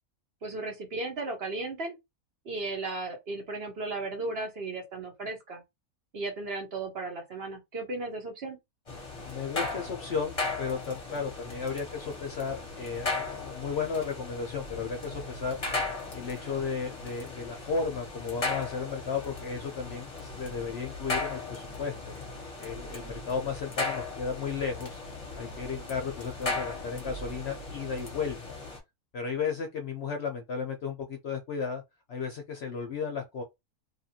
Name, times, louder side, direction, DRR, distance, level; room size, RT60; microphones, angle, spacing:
voice 1, 0.4-2.0 2.4-5.6 6.1-8.6, right 2 dB, 50° right, 1.0 m, -35 dB
sound 1, 8.9-28.8, left 3 dB, 30° left, 0.8 m, -37 dB
voice 2, 9.2-15.6 16.1-22.1 22.6-25.0 25.3-28.6 29.1-31.8 32.1-33.4, left 5 dB, 60° left, 0.7 m, -34 dB
2.7 x 2.5 x 2.7 m
omnidirectional pair, 1.5 m